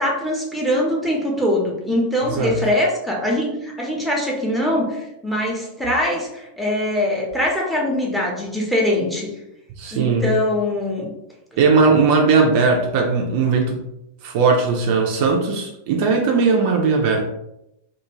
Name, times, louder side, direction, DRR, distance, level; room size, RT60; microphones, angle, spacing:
voice 1, 0.0-9.3 9.9-11.1, left 1 dB, ahead, -2 dB, 0.8 m, -22 dB
voice 2, 9.8-10.3 11.6-13.8 14.2-17.2, right 4 dB, 45° right, 1 dB, 0.4 m, -18 dB
2.5 x 2.3 x 2.9 m, 0.84 s
figure-of-eight pair, 90°, 0 cm